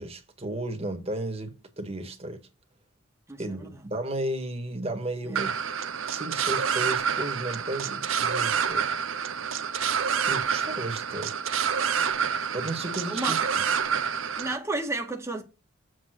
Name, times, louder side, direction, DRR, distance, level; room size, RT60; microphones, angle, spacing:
voice 1, 0.0-2.4 3.4-5.5 6.1-8.9 10.3-11.4 12.5-13.4, right 1 dB, 30° right, 1.9 m, -34 dB
voice 2, 3.3-3.7 5.2-5.5 13.1-13.3 14.3-15.4, right 2 dB, 15° right, 1.6 m, -32 dB
sound 1, 5.4-14.6, right 7 dB, 90° right, 0.8 m, -28 dB
7.9 x 3.9 x 6.3 m
head